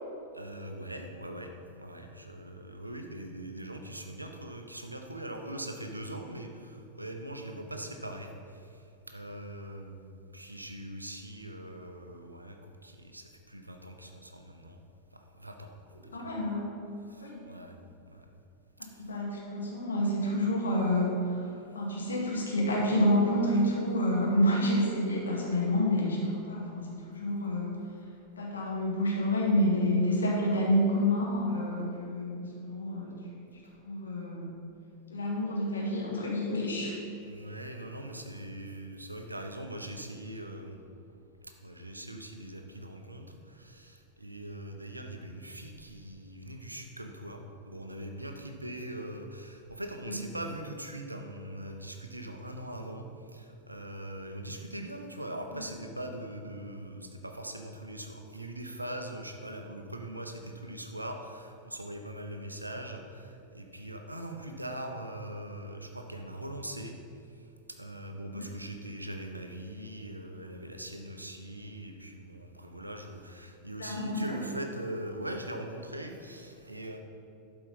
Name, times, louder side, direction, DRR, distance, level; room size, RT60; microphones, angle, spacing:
voice 1, 0.3-14.8 15.1-15.8 16.0-16.3 17.1-17.8 18.1-18.3 18.9-19.0 21.5-21.7 37.2-40.8 41.4-67.0 67.7-77.0, right 1 dB, 85° right, 5 dB, 0.8 m, -41 dB
voice 2, 15.9-16.7 17.2-17.4 19.0-21.4 21.7-27.8 28.4-33.5 33.8-34.5 35.1-36.9 50.1-50.2 55.5-55.6 68.3-68.4 73.8-74.4, left 1 dB, 70° left, -3 dB, 2.2 m, -29 dB
12.0 x 4.8 x 5.4 m, 2.7 s
figure-of-eight pair, 90°, 0 cm